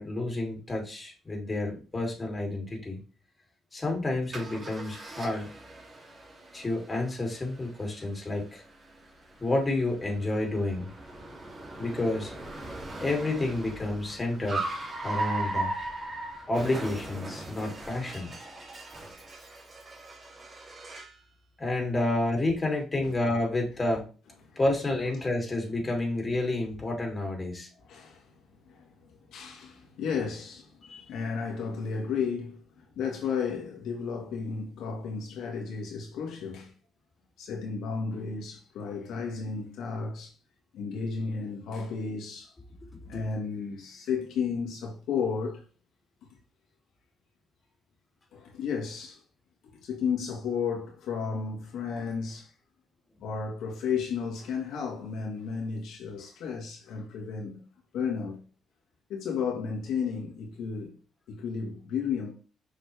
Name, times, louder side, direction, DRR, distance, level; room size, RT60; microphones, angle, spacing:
voice 1, 0.0-3.0 3.7-5.5 6.5-8.6 9.4-10.9 11.8-12.3 13.0-14.6 15.0-15.7 16.5-18.4 21.6-24.0 24.5-27.7 30.9-31.1 43.1-43.2, left 2 dB, 25° left, 3.1 m, -30 dB
Car, 4.3-21.2, right 2 dB, 35° right, 2.8 m, -39 dB
voice 2, 27.9-28.3 28.7-36.7 37.4-40.3 40.7-42.5 43.1-45.6 48.3-49.2 49.8-52.5 53.2-57.6 57.9-58.4 59.1-61.0 61.3-62.3, left 6 dB, 80° left, 1.8 m, -33 dB
6.8 x 5.5 x 3.5 m
cardioid pair, 90°, 0 cm